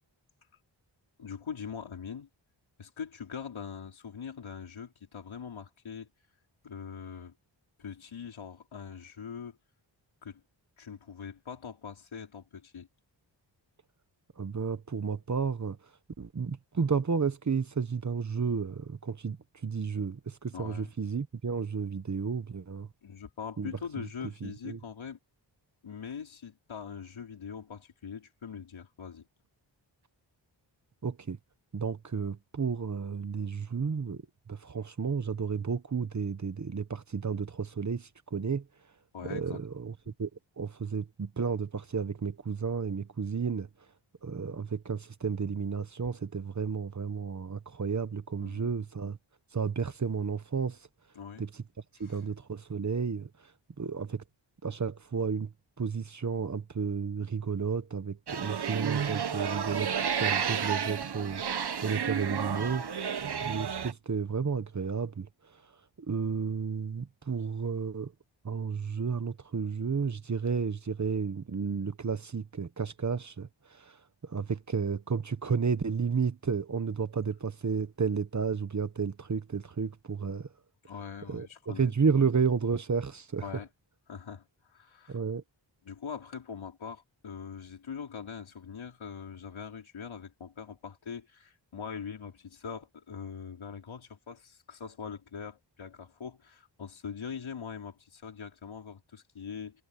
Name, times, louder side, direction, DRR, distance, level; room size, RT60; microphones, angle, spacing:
voice 1, 1.2-2.3 2.8-6.1 6.6-7.3 7.8-9.6 10.2-10.4 10.8-12.9 20.5-20.9 23.0-25.2 25.8-29.3 39.1-39.6 48.4-48.7 51.1-51.4 52.0-52.2 80.8-81.9 83.4-83.7 84.1-85.2 85.8-99.8, left 6 dB, 90° left, 4.7 m, -42 dB
voice 2, 14.4-15.8 16.2-19.4 19.6-22.9 23.6-23.7 24.0-24.1 24.4-24.8 31.0-31.4 31.7-38.7 39.3-39.9 40.2-40.3 40.6-43.7 44.2-49.2 49.5-50.8 51.4-51.6 52.0-53.3 53.8-54.2 54.6-62.9 63.4-65.3 66.1-68.1 68.4-74.0 74.2-80.5 81.3-83.5 85.1-85.4, right 5 dB, 40° right, 1.2 m, -32 dB
sound 1, 58.3-63.9, right 7 dB, 55° right, 1.2 m, -31 dB
wide cardioid pair, 150°, 46 cm